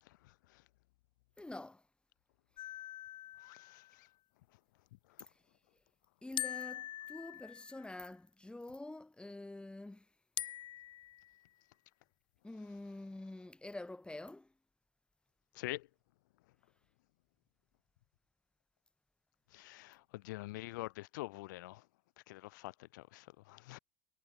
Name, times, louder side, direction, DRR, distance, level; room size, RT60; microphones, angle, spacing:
voice 1, 1.4-1.8 6.2-10.1 12.4-14.5, left 2 dB, 10° left, 7.1 m, -47 dB
sound 1, 2.6-4.0 6.4-8.0 10.4-11.5, left 12 dB, 50° left, 3.7 m, -44 dB
voice 2, 3.4-3.8 15.6-15.9 19.5-21.8 22.3-23.8, left 19 dB, 80° left, 1.8 m, -45 dB
hypercardioid pair, 80°, 10 cm